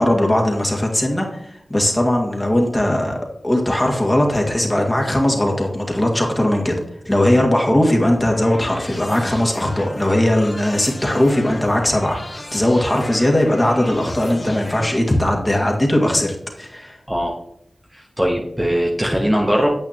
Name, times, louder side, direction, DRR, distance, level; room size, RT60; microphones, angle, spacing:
voice 1, 0.0-3.2 3.4-6.8 7.1-17.0, left 1 dB, 20° left, 0 dB, 1.9 m, -19 dB
sound 1, 8.1-14.9, left 1 dB, 35° left, 1.3 m, -35 dB
voice 2, 17.9-19.7, equal, 10° right, 0 dB, 1.1 m, -20 dB
9.2 x 8.3 x 2.9 m, 0.73 s
wide cardioid pair, 85°, 0 cm